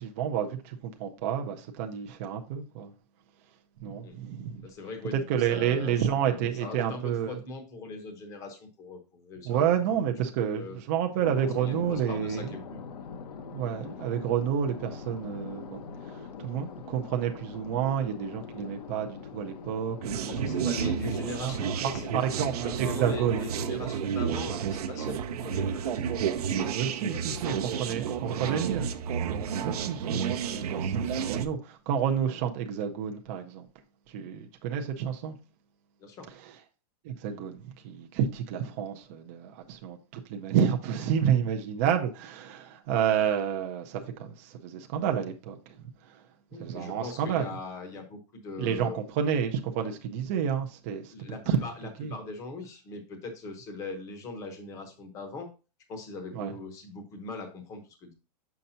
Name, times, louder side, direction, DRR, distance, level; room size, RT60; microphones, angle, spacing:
voice 1, 0.0-2.9 3.8-4.7 5.1-7.4 9.4-12.6 13.5-20.9 21.2-21.5 21.8-23.5 26.7-28.9 29.6-30.2 30.5-33.7 34.1-35.4 36.4-36.6 37.0-46.2 46.6-47.6 48.6-51.1 51.5-51.6 52.0-52.1 56.3-56.5, right 8 dB, 20° right, 0.4 m, -30 dB
voice 2, 4.6-5.9 6.3-9.6 10.5-10.8 11.6-12.8 20.2-26.8 27.1-28.0 28.2-28.7 36.0-36.3 46.5-48.9 51.1-55.5 55.9-58.1, left 3 dB, 15° left, 0.8 m, -41 dB
sound 1, 11.2-22.3, left 6 dB, 70° left, 0.9 m, -43 dB
sound 2, 20.0-31.5, right 7 dB, 65° right, 0.7 m, -31 dB
6.3 x 5.7 x 2.6 m
supercardioid pair, 180°, 21 cm